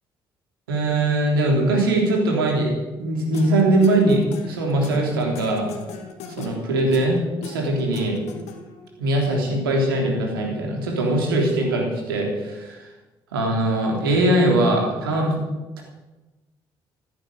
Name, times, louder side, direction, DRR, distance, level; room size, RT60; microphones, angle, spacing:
voice 1, 0.7-2.7 3.0-5.7 6.3-8.2 9.0-12.9 13.3-15.4 15.8-15.9, right 1 dB, 90° right, 0 dB, 3.4 m, -21 dB
sound 1, 3.3-8.9, left 4 dB, 70° left, 2.2 m, -38 dB
15.0 x 9.8 x 7.9 m, 1.1 s
hypercardioid pair, 45°, 12 cm